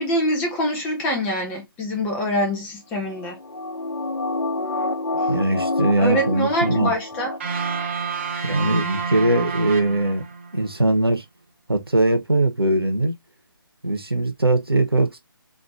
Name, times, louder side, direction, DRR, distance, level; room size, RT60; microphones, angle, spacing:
voice 1, 0.0-3.4 6.0-7.4, equal, 15° left, 1.0 m, -24 dB
sound 1, 3.1-7.9 8.2-8.3, left 2 dB, 85° left, 0.8 m, -28 dB
voice 2, 5.3-6.9 8.4-10.2 10.5-11.2 11.7-13.2 13.8-15.2, right 2 dB, 90° right, 1.2 m, -21 dB
sound 2, 7.4-10.6, right 5 dB, 30° right, 0.8 m, -29 dB
4.3 x 2.9 x 2.6 m
figure-of-eight pair, 150°, 12 cm